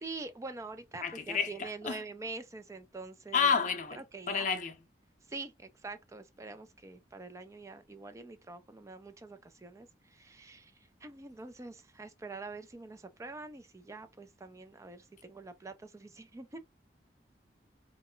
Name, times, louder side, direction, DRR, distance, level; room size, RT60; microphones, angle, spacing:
voice 1, 0.0-3.5 3.9-4.5 5.3-10.7 11.0-16.6, right 3 dB, 15° right, 0.3 m, -45 dB
voice 2, 1.0-2.0 3.3-4.7, left 6 dB, 45° left, 0.6 m, -30 dB
2.3 x 2.1 x 3.7 m
head